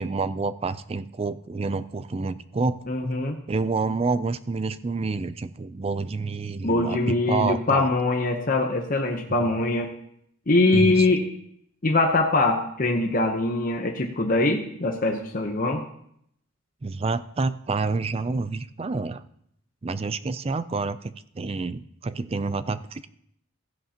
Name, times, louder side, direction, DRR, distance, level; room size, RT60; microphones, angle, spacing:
voice 1, 0.0-2.8 3.5-7.9 9.4-9.5 10.7-11.1 16.8-19.2 19.8-23.1, right 3 dB, 30° right, 15 dB, 0.4 m, -28 dB
voice 2, 2.9-3.4 6.6-9.9 10.5-11.2 11.8-15.8, left 2 dB, 40° left, 2 dB, 0.9 m, -23 dB
14.5 x 10.5 x 2.9 m, 0.70 s
head